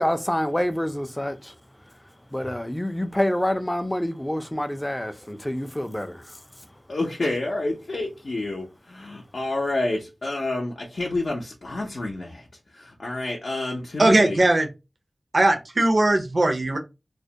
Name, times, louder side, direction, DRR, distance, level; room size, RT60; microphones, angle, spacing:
voice 1, 0.0-6.8, left 1 dB, 15° left, 0.4 m, -28 dB
voice 2, 6.9-12.4 12.7-14.4, left 2 dB, 70° left, 0.5 m, -29 dB
voice 3, 14.0-14.7 15.3-16.8, right 2 dB, 55° right, 0.5 m, -19 dB
2.2 x 2.1 x 2.7 m
wide cardioid pair, 50°, 0 cm